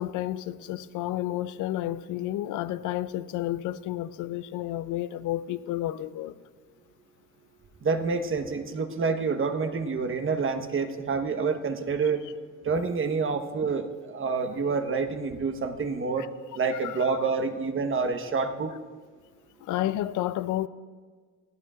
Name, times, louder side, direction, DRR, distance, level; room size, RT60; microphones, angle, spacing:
voice 1, 0.0-6.4 16.2-16.3 16.8-17.1 19.6-20.7, left 14 dB, 85° left, 0.5 m, -31 dB
voice 2, 7.8-12.2 12.6-16.3 16.5-18.7, right 4 dB, 45° right, 1.2 m, -28 dB
21.5 x 13.0 x 2.4 m
cardioid pair, 90°, 30 cm